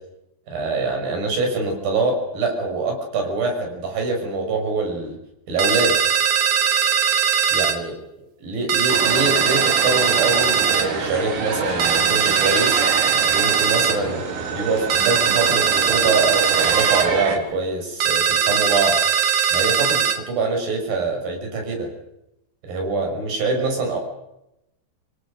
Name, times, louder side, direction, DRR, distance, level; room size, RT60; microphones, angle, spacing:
voice 1, 0.5-5.2 5.5-6.0 7.5-8.0 8.4-12.8 13.3-14.2 14.5-19.0 19.5-21.9 22.6-24.0, right 3 dB, 50° right, 3 dB, 7.4 m, -24 dB
sound 1, 5.6-7.8 8.7-10.9 11.8-14.0 14.9-17.1 18.0-20.2, right 7 dB, 65° right, 3.9 m, -20 dB
sound 2, 8.9-17.4, right 4 dB, 90° right, 6.2 m, -27 dB
27.0 x 23.0 x 6.6 m, 0.87 s
omnidirectional pair, 5.4 m